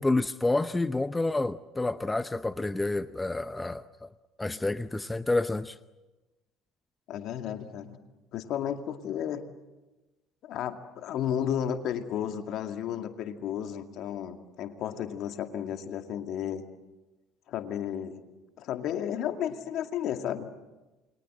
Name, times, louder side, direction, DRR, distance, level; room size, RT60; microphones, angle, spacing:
voice 1, 0.0-4.1 4.4-5.8, left 2 dB, 15° left, 13 dB, 0.8 m, -29 dB
voice 2, 7.1-8.0 8.3-9.4 10.4-16.6 17.5-18.2 18.6-20.5, left 9 dB, 60° left, 6 dB, 2.2 m, -33 dB
29.0 x 23.5 x 7.7 m, 1.1 s
hypercardioid pair, 65°, 0 cm